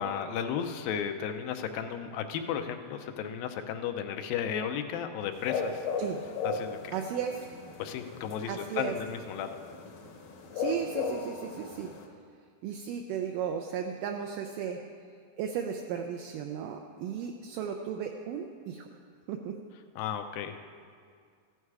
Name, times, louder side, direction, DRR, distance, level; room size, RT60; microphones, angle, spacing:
voice 1, 0.0-5.9 6.4-6.9 7.8-9.6 20.0-20.6, left 8 dB, 85° left, 6 dB, 2.5 m, -34 dB
sound 1, 5.3-12.1, left 5 dB, 65° left, 1.6 m, -36 dB
voice 2, 6.9-7.5 8.5-8.9 10.5-11.9 12.6-14.8 15.4-18.9 19.3-19.5, right 8 dB, 80° right, 3 dB, 2.1 m, -35 dB
15.0 x 10.0 x 4.8 m, 2.1 s
omnidirectional pair, 4.0 m